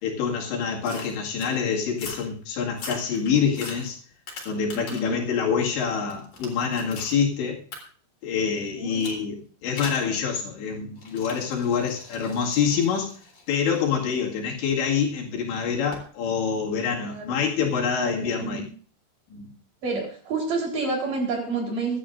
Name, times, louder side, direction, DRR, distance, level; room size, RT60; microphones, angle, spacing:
voice 1, 0.0-4.0 4.5-7.6 8.2-13.1 13.5-18.6 19.3-19.5, left 6 dB, 75° left, -2 dB, 4.3 m, -26 dB
sound 1, 0.8-1.5 1.9-2.3 2.7-5.2 5.6-7.2 7.7-7.8 9.0-9.2 9.8-10.1 11.0-14.9 15.9-16.1, left 3 dB, 45° left, 4.7 m, -41 dB
voice 2, 4.7-5.2 8.8-9.0 17.1-17.4 18.0-18.6 19.8-22.0, right 3 dB, 50° right, -1 dB, 5.2 m, -29 dB
24.0 x 11.0 x 2.6 m, 0.42 s
omnidirectional pair, 5.2 m